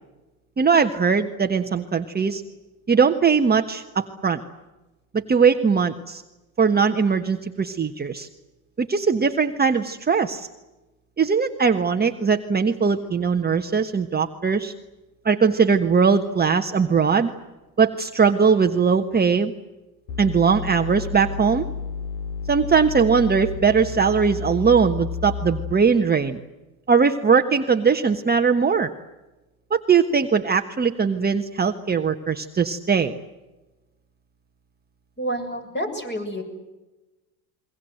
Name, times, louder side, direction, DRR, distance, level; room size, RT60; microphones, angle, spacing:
voice 1, 0.6-2.4 2.9-4.4 5.1-6.2 6.6-8.3 8.8-10.5 11.2-14.7 15.2-17.3 17.8-19.5 20.2-21.7 22.5-26.4 26.9-28.9 29.7-33.1, right 5 dB, 20° right, 5 dB, 1.4 m, -20 dB
sound 1, 20.1-26.1, left 5 dB, 80° left, 3.0 m, -31 dB
voice 2, 35.2-36.4, right 1 dB, 20° left, 5 dB, 7.6 m, -28 dB
28.5 x 23.0 x 7.9 m, 1.1 s
supercardioid pair, 100°, 50 cm